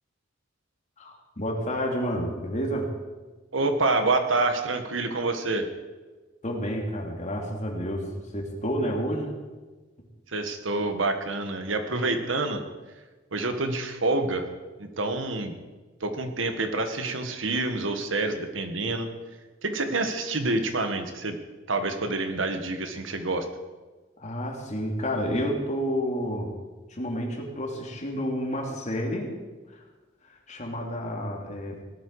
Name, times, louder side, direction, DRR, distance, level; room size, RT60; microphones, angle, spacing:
voice 1, 1.0-2.9 6.4-9.3 24.2-26.5 26.9-29.3 29.7-29.8 30.2-31.8, equal, 40° left, 0 dB, 2.8 m, -30 dB
voice 2, 3.5-5.6 10.3-12.6 13.3-14.5 14.8-15.6 16.0-19.1 19.6-21.4 21.7-23.4, right 2 dB, 75° right, 7 dB, 1.6 m, -27 dB
18.0 x 12.5 x 4.9 m, 1.3 s
head